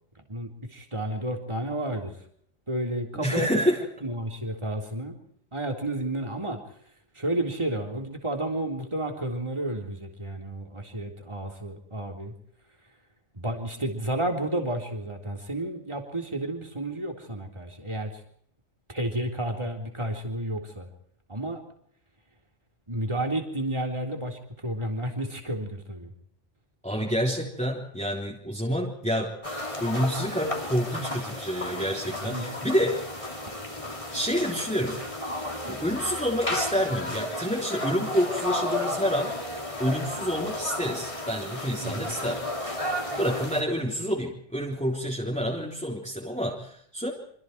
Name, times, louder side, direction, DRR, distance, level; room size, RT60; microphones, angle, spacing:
voice 1, 0.3-2.1 2.7-3.6 4.0-5.2 5.5-6.6 7.2-12.3 13.3-18.1 18.9-20.9 21.3-21.6 22.9-26.1 32.2-32.5 41.8-42.2, right 1 dB, 25° right, 3 dB, 3.7 m, -31 dB
voice 2, 3.1-3.8 26.8-29.4 29.8-33.0 34.1-35.0 35.7-39.3 39.8-42.4 43.2-47.1, equal, 5° left, -2 dB, 3.5 m, -28 dB
sound 1, 29.4-43.6, left 1 dB, 25° left, 3.2 m, -33 dB
29.0 x 26.0 x 4.7 m, 0.65 s
omnidirectional pair, 1.2 m